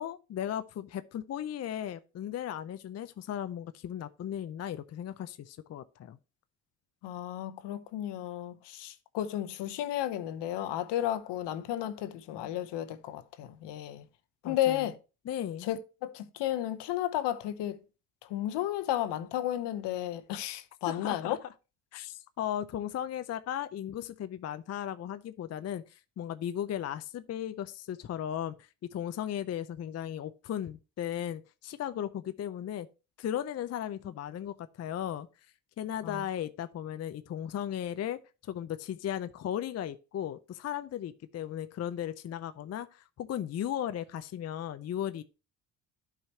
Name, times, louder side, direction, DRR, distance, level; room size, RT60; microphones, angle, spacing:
voice 1, 0.0-6.2 14.4-14.9 15.3-15.7 20.9-21.4 21.9-32.9 33.2-35.3 35.8-45.2, left 10 dB, 35° left, 0.5 m, -36 dB
voice 2, 7.0-14.1 14.5-15.0 15.6-17.8 18.3-21.4 36.0-36.2, left 12 dB, 70° left, 0.9 m, -33 dB
11.5 x 5.0 x 2.8 m
supercardioid pair, 70°, 44 cm